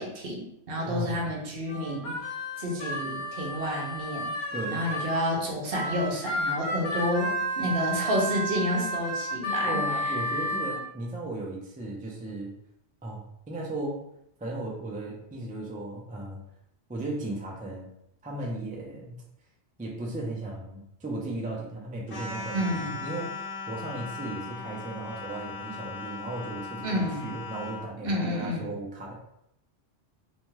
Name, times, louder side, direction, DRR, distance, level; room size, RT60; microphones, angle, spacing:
voice 1, 0.0-2.2 2.6-4.3 4.7-10.1 22.5-23.0 26.8-27.3 28.0-28.7, equal, 65° right, -1 dB, 0.9 m, -30 dB
voice 2, 0.8-1.2 4.5-4.8 9.6-12.5 13.0-14.0 14.4-16.4 16.9-17.9 18.2-19.2 19.8-29.1, right 2 dB, 15° right, -3 dB, 0.3 m, -36 dB
Harmonica, 1.7-5.2 5.7-10.8, equal, 85° left, 0.9 m, -31 dB
sound 1, 22.1-27.9, left 4 dB, 55° left, 1.3 m, -38 dB
2.7 x 2.3 x 3.1 m, 0.78 s
omnidirectional pair, 1.1 m